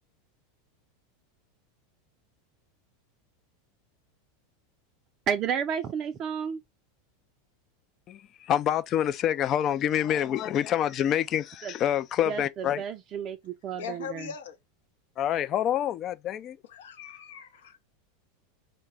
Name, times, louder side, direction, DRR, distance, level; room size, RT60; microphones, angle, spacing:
voice 1, 5.3-6.6 11.6-11.7 12.3-14.3, right 7 dB, 40° right, 0.4 m, -31 dB
voice 2, 8.1-12.8 15.2-16.6, left 10 dB, 40° left, 0.3 m, -27 dB
voice 3, 13.7-14.6 16.7-17.8, left 7 dB, 70° left, 0.7 m, -40 dB
3.9 x 2.2 x 3.2 m
figure-of-eight pair, 85°, 0 cm